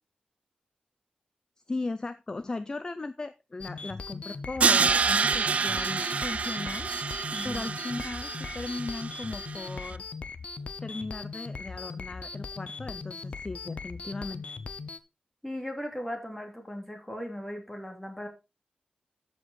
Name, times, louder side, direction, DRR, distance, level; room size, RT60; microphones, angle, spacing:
voice 1, 1.7-6.9 7.4-10.0 10.8-14.4, left 3 dB, 25° left, 12 dB, 0.5 m, -37 dB
sound 1, 3.6-15.0, left 4 dB, 50° left, 0.8 m, -39 dB
Crash cymbal, 4.6-9.7, right 5 dB, 55° right, 0.4 m, -28 dB
voice 2, 7.3-7.7 15.4-18.3, equal, 5° left, 3 dB, 2.6 m, -37 dB
13.5 x 5.4 x 4.1 m, 0.27 s
wide cardioid pair, 160°, 3 cm